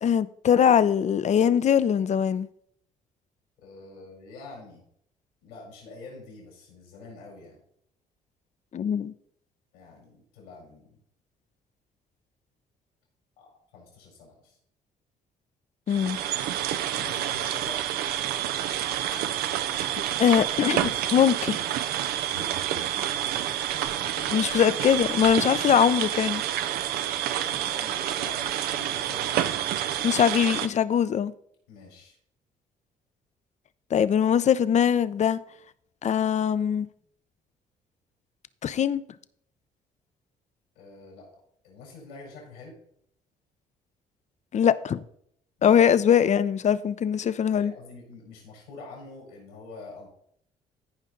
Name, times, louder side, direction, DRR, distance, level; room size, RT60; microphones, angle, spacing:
voice 1, 0.0-2.5 8.7-9.1 15.9-16.2 20.2-21.6 24.3-26.4 30.0-31.3 33.9-35.4 36.0-36.9 38.6-39.0 44.5-45.0 45.6-47.7, left 8 dB, 45° left, 0.6 m, -22 dB
voice 2, 3.6-4.8 5.4-7.6 9.7-11.0 13.4-14.6 16.9-17.9 22.3-23.7 24.0-24.4 27.3-29.7 31.7-32.2 40.7-41.3 41.6-42.8 45.6-45.8 47.3-50.1, left 3 dB, 90° left, 4.4 m, -46 dB
sound 1, 15.9-30.7, right 11 dB, 75° right, 0.6 m, -28 dB
15.0 x 5.3 x 3.9 m
hypercardioid pair, 55°, 16 cm